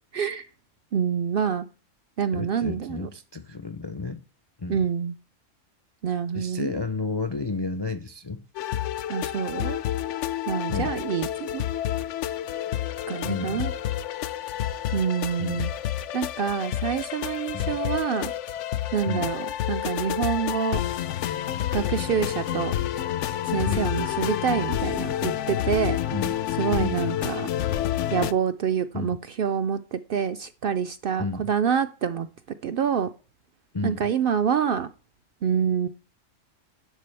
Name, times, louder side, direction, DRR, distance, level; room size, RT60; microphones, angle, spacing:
voice 1, 0.1-0.5 0.9-1.7 2.2-3.1 4.7-5.1 6.0-6.7 9.1-9.8 10.5-11.6 13.1-13.7 14.9-15.7 16.1-18.3 18.9-20.8 21.7-22.7 23.4-26.0 26.6-27.5 28.1-32.3 32.6-33.1 33.8-34.9 35.4-35.9, right 7 dB, 60° right, 0.6 m, -26 dB
voice 2, 2.3-4.2 4.6-4.8 6.3-8.4 10.7-10.9 13.2-13.7 15.4-15.6 17.5-17.7 19.1-19.3 23.7-23.9 26.1-26.4 26.8-27.0 28.9-29.2 31.2-31.5 33.7-34.0, left 3 dB, 40° left, 0.3 m, -31 dB
sound 1, 8.6-28.3, left 11 dB, 70° left, 0.9 m, -29 dB
11.0 x 7.5 x 3.3 m
omnidirectional pair, 1.3 m